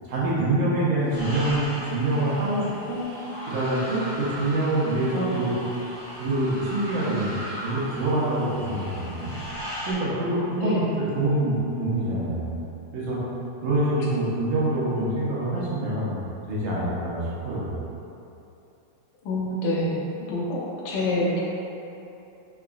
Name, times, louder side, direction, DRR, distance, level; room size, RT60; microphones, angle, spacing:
voice 1, 0.1-3.0 3.5-5.5 6.2-7.3 7.6-9.3 9.9-10.8 11.1-12.5 12.9-13.2 13.6-16.2 16.5-17.7, right 1 dB, 75° right, -8 dB, 2.0 m, -25 dB
sound 1, 1.1-9.9, equal, 50° left, 1.1 m, -37 dB
voice 2, 10.6-11.0 14.1-14.2 19.2-21.4, left 1 dB, 90° left, -6 dB, 2.3 m, -27 dB
5.7 x 2.9 x 2.4 m, 2.8 s
omnidirectional pair, 3.7 m